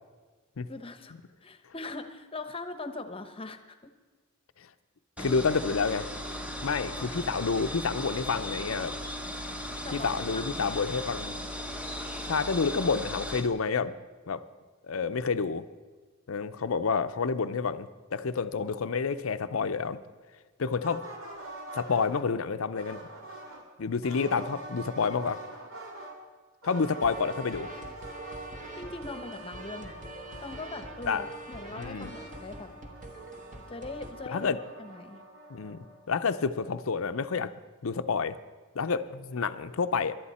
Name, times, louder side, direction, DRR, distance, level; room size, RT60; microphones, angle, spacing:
voice 1, 0.7-1.1 1.4-3.8 7.0-7.1 9.8-10.9 28.8-30.0 30.4-32.7 33.7-35.2, left 3 dB, 25° left, 9 dB, 0.9 m, -41 dB
voice 2, 5.2-6.1 6.6-8.9 9.9-11.3 12.2-13.9 14.3-14.4 14.8-15.6 16.3-20.0 20.6-21.0 21.7-23.0 23.8-25.4 26.6-27.7 31.1-31.2 31.8-32.1 34.3-34.6 35.5-37.5 37.8-38.4 38.7-40.2, left 5 dB, 70° left, 12 dB, 0.6 m, -29 dB
sound 1, 5.2-13.5, left 1 dB, 5° right, 0.8 m, -37 dB
sound 2, 20.8-22.3 22.7-23.7 24.0-26.1 26.6-36.4, right 2 dB, 65° right, 2.2 m, -45 dB
sound 3, 26.7-34.1, right 2 dB, 35° right, 1.3 m, -44 dB
21.0 x 12.0 x 4.3 m, 1.4 s
head